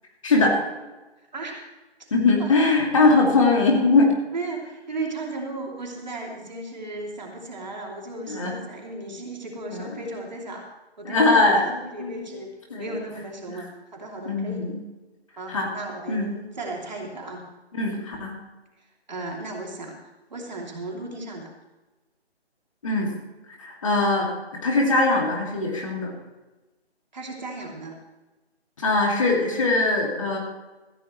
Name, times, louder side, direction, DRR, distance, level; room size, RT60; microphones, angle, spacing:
voice 1, 0.2-0.6 2.1-4.1 8.2-8.5 9.7-9.9 11.0-12.2 12.7-12.9 14.2-14.8 15.5-15.7 16.1-16.3 17.8-18.4 22.8-23.1 23.6-24.3 24.6-26.1 28.8-30.4, left 3 dB, 30° left, -1 dB, 2.3 m, -21 dB
voice 2, 1.3-1.6 2.0-2.1 2.4-2.5 4.3-10.7 11.0-11.5 11.8-12.5 12.8-14.7 15.4-17.4 19.1-20.0 20.3-21.5 27.1-27.9, right 2 dB, 40° right, 0 dB, 2.9 m, -35 dB
15.5 x 15.0 x 3.2 m, 1.1 s
figure-of-eight pair, 155°, 32 cm